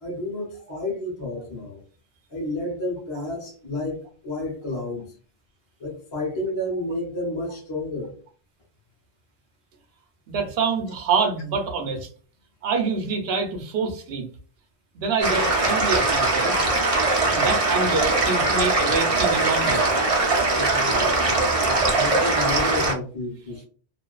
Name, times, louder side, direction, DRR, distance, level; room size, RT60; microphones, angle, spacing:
voice 1, 0.0-1.8 2.3-5.1 5.8-8.2 20.5-23.7, left 1 dB, 30° left, -3 dB, 0.8 m, -31 dB
voice 2, 10.3-12.1 12.6-14.3 14.9-16.5 17.3-19.9, right 4 dB, 65° right, 4 dB, 0.8 m, -26 dB
sound 1, 15.2-22.9, right 2 dB, 40° right, 0.5 m, -21 dB
2.5 x 2.3 x 2.2 m, 0.40 s
omnidirectional pair, 1.1 m